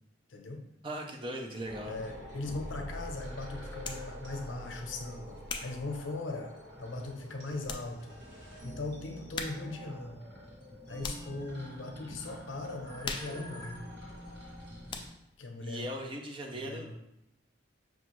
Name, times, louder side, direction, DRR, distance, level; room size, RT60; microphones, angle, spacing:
voice 1, 0.3-0.6 1.9-6.5 6.8-8.2 8.6-10.2 10.9-13.8 15.4-15.9 16.5-16.9, left 2 dB, 90° left, 3 dB, 0.7 m, -39 dB
voice 2, 0.8-2.0 12.0-12.1 15.6-16.9, equal, 25° right, 2 dB, 0.5 m, -39 dB
sound 1, 1.6-15.1, equal, 60° right, 1.3 m, -46 dB
sound 2, 3.8-4.1 4.8-6.8 7.3-7.4 7.6-7.9 8.2-8.3 9.3-9.8 10.1-11.4 11.9-12.2 12.5-14.6 14.9-15.4, left 4 dB, 25° left, 0.3 m, -42 dB
5.9 x 2.4 x 3.0 m, 0.86 s
head